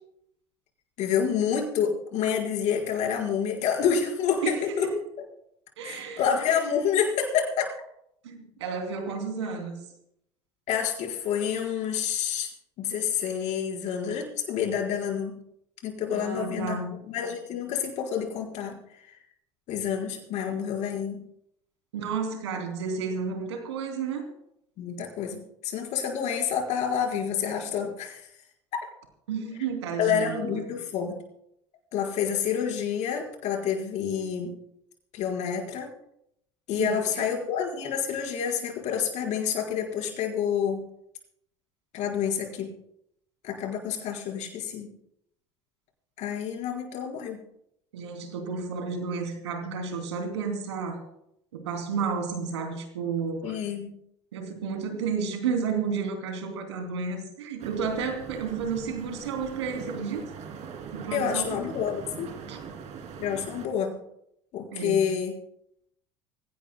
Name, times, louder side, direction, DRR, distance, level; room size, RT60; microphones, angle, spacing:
voice 1, 1.0-4.9 5.8-7.7 10.7-12.5 12.8-15.4 15.8-16.8 17.1-18.8 19.7-21.2 24.8-28.3 28.7-28.8 30.0-31.2 31.9-34.5 35.1-35.9 36.7-40.9 41.9-42.7 43.4-44.9 46.2-47.4 53.4-53.9 61.1-62.3 63.2-64.0 64.5-65.4, left 8 dB, 60° left, 0 dB, 4.7 m, -28 dB
voice 2, 4.4-5.0 5.8-6.2 8.2-9.8 16.1-16.9 21.9-24.3 29.3-30.7 36.8-37.3 47.9-51.0 51.5-53.6 54.3-60.3 60.9-61.6 62.5-62.6 64.7-65.1, right 5 dB, 85° right, 4 dB, 3.0 m, -32 dB
sound 1, 57.6-63.7, right 6 dB, 55° right, 3.0 m, -41 dB
25.0 x 17.0 x 2.2 m, 0.76 s
hypercardioid pair, 75°, 14 cm